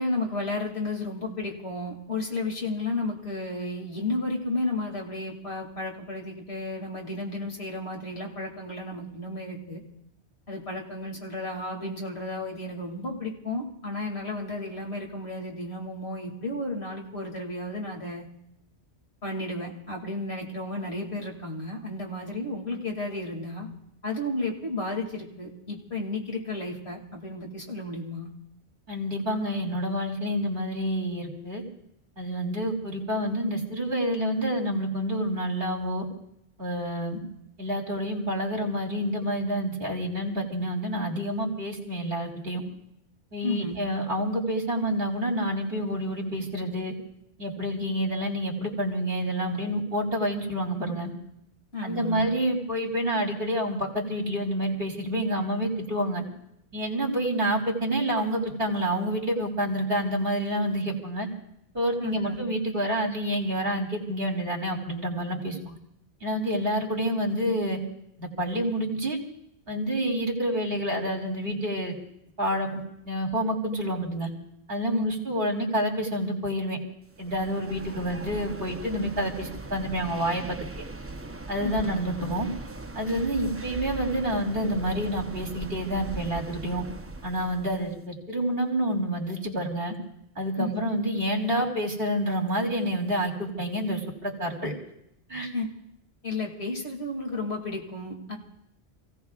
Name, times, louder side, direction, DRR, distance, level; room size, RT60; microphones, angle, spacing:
voice 1, 0.0-9.8 10.5-18.3 19.2-23.7 24.0-28.3 43.4-43.8 51.7-52.3 62.0-62.4 74.9-75.0 81.6-81.9 90.6-90.7 95.5-95.7 96.2-98.4, left 2 dB, 70° left, 0 dB, 2.7 m, -33 dB
voice 2, 28.9-31.6 32.2-36.1 36.6-37.2 37.6-42.6 43.3-46.9 47.4-51.1 51.8-56.2 56.7-61.3 61.7-65.8 66.2-67.8 68.2-69.2 69.7-71.9 72.4-74.3 74.7-76.8 77.2-80.6 81.5-82.5 82.9-86.8 87.2-89.9 90.4-94.7 95.3-95.5, equal, 60° right, 1 dB, 2.7 m, -28 dB
sound 1, 77.1-88.0, right 2 dB, 20° right, 0.5 m, -40 dB
28.5 x 16.5 x 2.4 m, 0.79 s
omnidirectional pair, 1.1 m